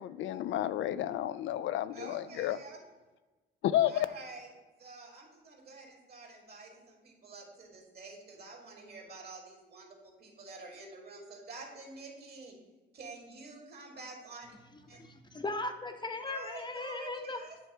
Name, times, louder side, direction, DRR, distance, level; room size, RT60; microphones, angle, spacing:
voice 1, 0.0-2.6 3.6-4.1, left 12 dB, 75° left, 13 dB, 0.4 m, -31 dB
voice 2, 1.9-2.8 3.9-4.5 4.8-12.6 12.9-14.6 14.9-15.0 16.3-17.6, right 3 dB, 50° right, 2 dB, 2.4 m, -48 dB
voice 3, 14.9-17.4, left 2 dB, 20° left, 5 dB, 0.8 m, -38 dB
9.1 x 3.3 x 6.7 m, 1.2 s
cardioid pair, 90°, 20 cm